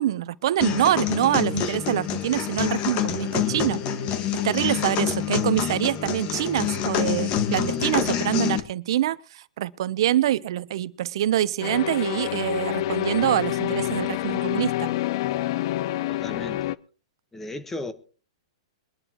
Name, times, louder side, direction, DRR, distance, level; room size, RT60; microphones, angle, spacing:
voice 1, 0.0-3.8 4.4-14.9, right 12 dB, 60° right, 0.7 m, -25 dB
sound 1, 0.6-8.6, left 9 dB, 40° left, 1.6 m, -26 dB
sound 2, 11.6-16.8, left 14 dB, 55° left, 0.6 m, -27 dB
voice 2, 16.1-16.7 17.3-17.9, left 2 dB, 10° left, 1.3 m, -35 dB
23.0 x 11.0 x 3.0 m
hypercardioid pair, 125°, 3 cm